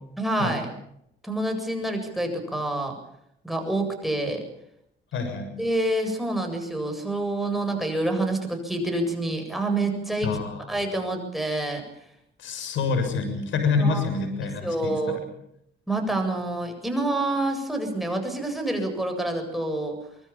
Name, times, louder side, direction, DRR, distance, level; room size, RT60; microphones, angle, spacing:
voice 1, 0.2-0.7 1.2-3.0 3.4-4.4 5.6-10.3 10.7-11.8 13.8-14.0 14.6-15.2 15.9-20.0, right 2 dB, ahead, 3 dB, 7.8 m, -27 dB
voice 2, 5.1-5.6 10.2-10.9 12.4-15.3, left 4 dB, 75° left, 7 dB, 6.9 m, -27 dB
25.0 x 22.0 x 7.2 m, 0.76 s
cardioid pair, 90°, 20 cm